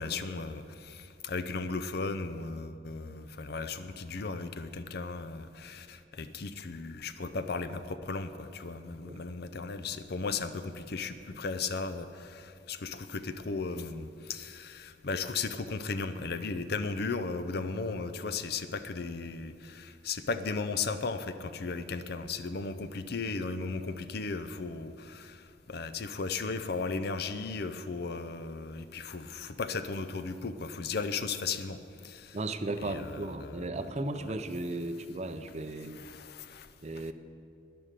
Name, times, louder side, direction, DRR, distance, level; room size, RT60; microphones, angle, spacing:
voice 1, 0.0-32.4 32.8-33.7 34.2-34.3 35.9-36.7, left 4 dB, 55° left, 11 dB, 0.6 m, -36 dB
voice 2, 32.3-35.9 36.8-37.1, right 2 dB, 35° right, 10 dB, 0.6 m, -35 dB
11.5 x 10.5 x 6.7 m, 2.5 s
head